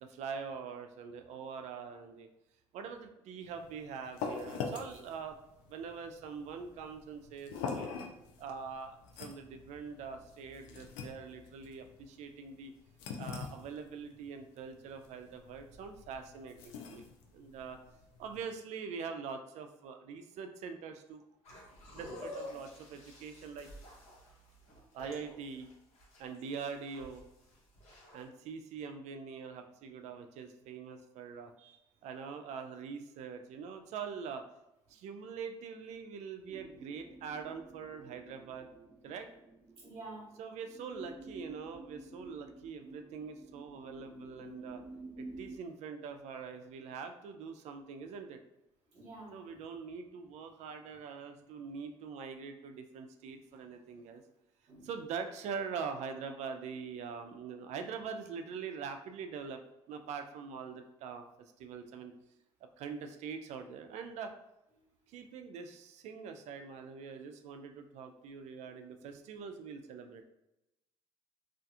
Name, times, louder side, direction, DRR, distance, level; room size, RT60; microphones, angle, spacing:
voice 1, 0.0-2.3 2.7-5.4 5.7-7.9 8.4-12.7 13.2-17.1 17.3-17.8 18.2-21.2 21.9-23.7 24.9-25.7 26.2-27.2 28.1-34.4 34.9-38.7 39.0-39.3 40.4-44.8 45.2-48.4 49.3-54.2 54.8-59.6 59.9-61.2 61.6-62.1 62.8-64.3 65.1-70.2, right 6 dB, 70° right, 7 dB, 0.4 m, -43 dB
sound 1, 3.4-18.4, left 5 dB, 90° left, 0.4 m, -44 dB
sound 2, 21.5-28.3, left 1 dB, 65° left, 1.1 m, -50 dB
sound 3, 36.5-45.6, right 2 dB, 30° right, 0.7 m, -51 dB
voice 2, 39.8-40.4 43.8-43.9 48.9-49.4 54.7-54.9, right 2 dB, 50° right, -5 dB, 1.1 m, -49 dB
2.4 x 2.3 x 2.7 m, 0.88 s
supercardioid pair, 75°, 12 cm